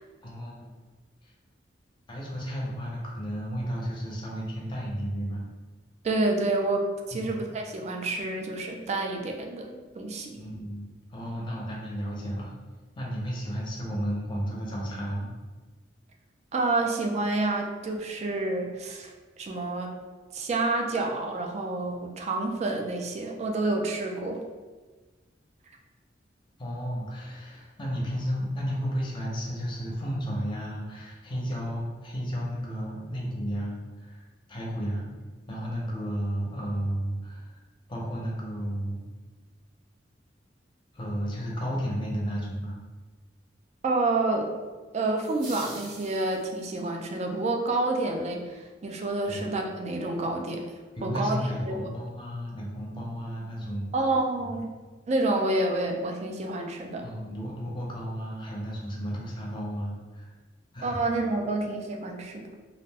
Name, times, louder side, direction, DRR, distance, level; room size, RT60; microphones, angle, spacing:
voice 1, 0.2-0.8 1.2-1.3 2.1-5.5 7.1-7.4 10.4-12.5 13.0-15.3 26.6-35.0 35.5-37.6 37.9-39.1 40.9-42.8 49.3-49.4 51.0-53.9 54.4-54.5 57.0-60.3 60.7-61.0, equal, 25° left, -3 dB, 0.6 m, -33 dB
voice 2, 6.0-10.4 16.5-19.9 20.3-24.4 43.8-44.5 44.9-50.7 51.0-51.4 51.7-51.9 53.9-54.7 55.1-57.1 60.8-62.5, right 2 dB, 40° right, 2 dB, 0.4 m, -28 dB
sound 1, 45.2-46.8, right 2 dB, 70° right, 1.0 m, -44 dB
2.4 x 2.1 x 3.3 m, 1.3 s
head